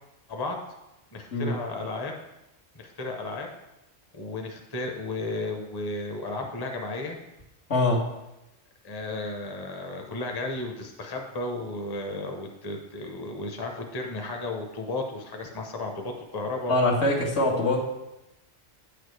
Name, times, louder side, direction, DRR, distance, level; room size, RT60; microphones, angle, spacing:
voice 1, 1.1-2.1 2.7-3.5 4.1-7.2 8.8-16.8 17.5-17.7, left 2 dB, 25° left, 2 dB, 0.7 m, -34 dB
voice 2, 7.7-8.0 16.7-17.8, left 2 dB, 75° left, -3 dB, 1.8 m, -23 dB
8.6 x 6.8 x 3.3 m, 0.93 s
omnidirectional pair, 1.2 m